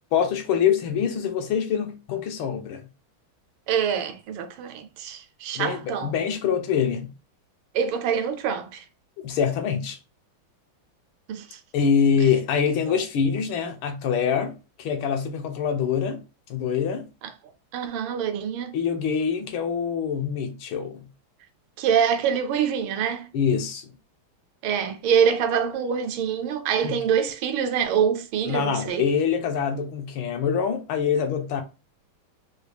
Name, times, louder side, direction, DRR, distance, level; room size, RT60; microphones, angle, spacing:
voice 1, 0.1-2.8 5.5-7.1 9.2-10.0 11.7-16.2 16.5-17.1 18.7-21.1 23.3-23.9 26.8-27.0 28.5-31.6, left 7 dB, 80° left, 1.5 m, -25 dB
voice 2, 3.7-6.1 7.7-8.8 11.3-11.6 17.2-17.3 17.7-18.7 21.8-23.3 24.6-29.1, right 7 dB, 80° right, 1.4 m, -25 dB
4.7 x 2.3 x 3.3 m
omnidirectional pair, 2.3 m